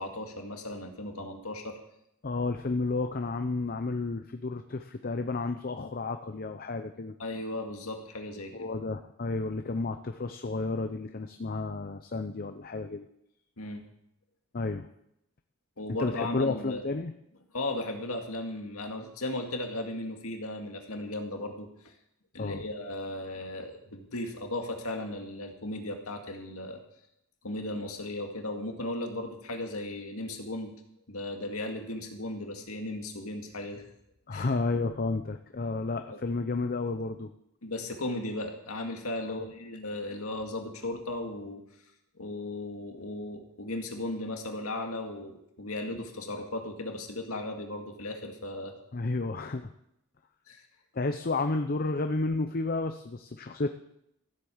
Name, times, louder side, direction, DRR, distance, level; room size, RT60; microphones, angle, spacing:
voice 1, 0.0-1.8 7.2-8.7 13.6-13.8 15.8-16.8 17.5-21.9 22.3-26.8 27.4-30.7 31.1-33.9 34.3-34.5 36.1-36.2 37.6-41.6 42.2-48.7 50.5-50.7, left 1 dB, 80° left, 3 dB, 2.1 m, -36 dB
voice 2, 2.2-7.1 8.5-13.1 14.5-14.9 16.0-17.1 22.4-22.6 34.3-37.3 39.3-39.4 48.9-49.7 50.9-53.7, left 3 dB, 40° left, 7 dB, 0.6 m, -31 dB
15.0 x 8.0 x 7.2 m, 0.80 s
head